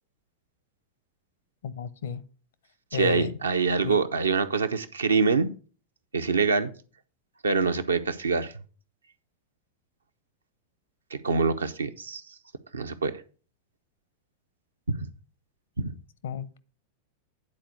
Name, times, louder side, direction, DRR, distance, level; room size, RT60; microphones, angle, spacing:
voice 1, 1.6-2.2 2.9-3.3 3.8-4.0 16.2-16.6, left 7 dB, 60° left, 0.6 m, -32 dB
voice 2, 2.9-5.5 6.1-6.7 7.4-8.5 11.1-12.2 12.7-13.1 14.9-15.1 15.8-15.9, right 4 dB, 75° right, 0.7 m, -25 dB
9.9 x 4.2 x 6.3 m
figure-of-eight pair, 90°, 0 cm